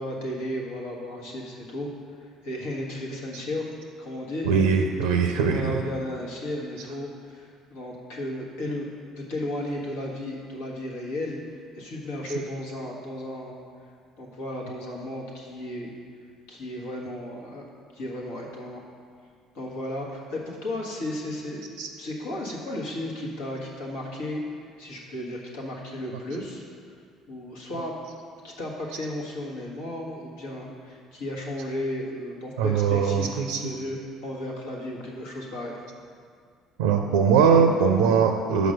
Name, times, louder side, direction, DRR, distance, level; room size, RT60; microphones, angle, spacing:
voice 1, 0.0-1.9 2.2-3.7 4.0-4.5 5.4-8.9 9.2-13.6 14.2-15.9 16.5-17.6 17.9-18.8 19.5-21.6 22.0-26.6 27.3-27.9 28.4-35.8, left 1 dB, 80° left, -3 dB, 1.4 m, -34 dB
voice 2, 4.4-5.8 21.8-21.9 32.6-33.6 36.8-38.7, right 6 dB, 85° right, 4 dB, 0.4 m, -21 dB
6.1 x 4.9 x 6.5 m, 2.2 s
hypercardioid pair, 65°, 0 cm